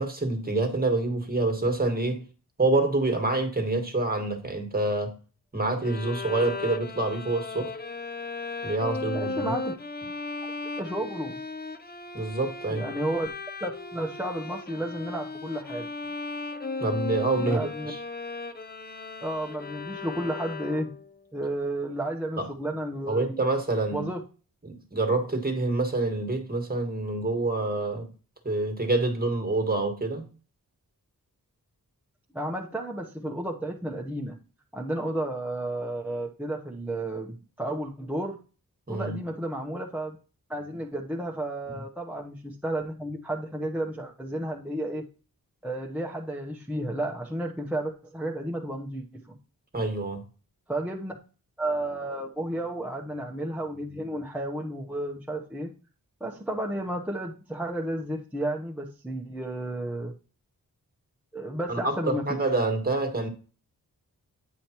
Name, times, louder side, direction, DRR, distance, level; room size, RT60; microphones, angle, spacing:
voice 1, 0.0-2.3 2.6-5.1 5.5-7.8 8.6-9.5 12.1-12.9 16.8-18.0 22.4-22.5 23.1-24.1 24.6-28.1 28.4-30.3 38.9-39.2 49.7-50.3 61.7-63.3, right 2 dB, 25° right, 1.7 m, -27 dB
Bowed string instrument, 5.8-21.1, left 3 dB, 25° left, 0.6 m, -36 dB
voice 2, 9.1-9.7 10.8-11.4 12.7-13.3 13.6-15.9 17.4-17.9 19.2-20.9 21.3-23.4 23.9-24.2 32.3-34.4 34.7-38.4 38.9-40.2 40.5-45.1 45.6-49.4 50.7-51.1 51.6-55.7 56.2-60.1 61.3-62.4, right 1 dB, 5° right, 0.9 m, -32 dB
9.3 x 5.1 x 3.0 m
wide cardioid pair, 70°, 36 cm